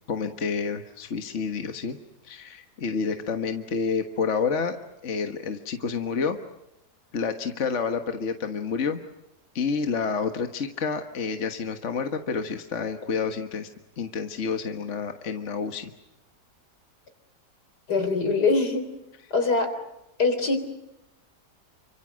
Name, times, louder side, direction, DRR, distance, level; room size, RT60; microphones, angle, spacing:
voice 1, 0.1-2.0 2.2-4.8 5.0-6.4 7.1-9.0 9.5-13.7 14.0-15.9, left 5 dB, 45° left, 6 dB, 1.7 m, -29 dB
voice 2, 17.9-18.8 19.3-19.7 20.2-20.6, left 3 dB, 70° left, 8 dB, 4.2 m, -23 dB
29.0 x 25.5 x 6.4 m, 0.91 s
omnidirectional pair, 1.8 m